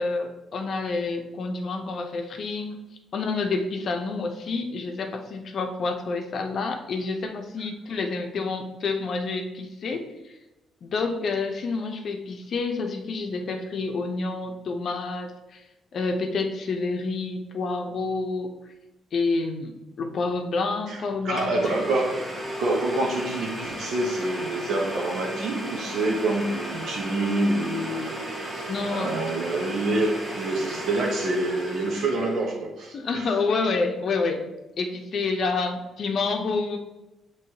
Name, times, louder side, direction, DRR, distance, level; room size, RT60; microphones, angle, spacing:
voice 1, 0.0-2.8 3.1-10.1 10.8-15.6 15.9-18.5 19.1-21.8 28.7-29.4 32.9-34.4 34.8-36.8, left 3 dB, 60° left, 4 dB, 0.6 m, -28 dB
Domestic sounds home sounds, 20.9-21.0 21.4-32.4, right 1 dB, 30° right, 1.2 m, -35 dB
voice 2, 20.9-22.3 22.6-33.3, right 2 dB, 70° right, -1 dB, 0.8 m, -27 dB
6.2 x 3.0 x 2.8 m, 1.0 s
cardioid pair, 90°, 0 cm